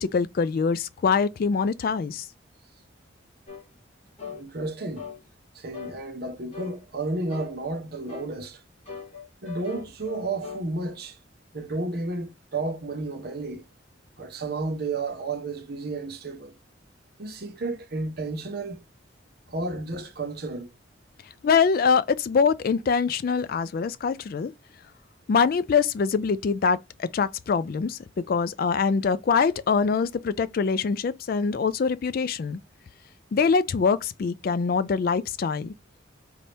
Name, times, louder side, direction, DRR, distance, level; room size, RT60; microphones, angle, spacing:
voice 1, 0.0-2.3 21.4-24.5 25.3-32.6 33.3-35.7, left 5 dB, 50° left, 0.3 m, -24 dB
sound 1, 3.5-3.7 4.2-4.4 5.0-5.2 5.7-6.0 6.5-6.8 7.3-7.6 8.1-8.3 8.9-10.7, left 6 dB, 35° left, 1.8 m, -40 dB
voice 2, 4.3-5.1 5.5-8.6 9.4-11.2 11.5-13.6 14.2-16.5 17.2-18.8 19.5-20.7, right 3 dB, 55° right, 0.8 m, -32 dB
4.1 x 2.7 x 3.3 m
head